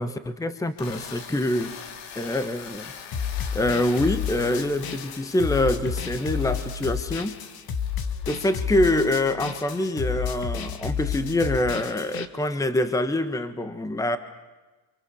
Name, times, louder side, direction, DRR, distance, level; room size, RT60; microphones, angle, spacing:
voice 1, 0.0-1.8 2.1-2.9 3.5-7.4 8.3-14.2, left 1 dB, 5° left, 11 dB, 1.4 m, -25 dB
sound 1, 0.7-9.2, left 6 dB, 65° left, 3.5 m, -43 dB
sound 2, 3.1-12.3, left 7 dB, 50° left, 2.4 m, -31 dB
29.0 x 27.0 x 7.2 m, 1.2 s
supercardioid pair, 120°, 47 cm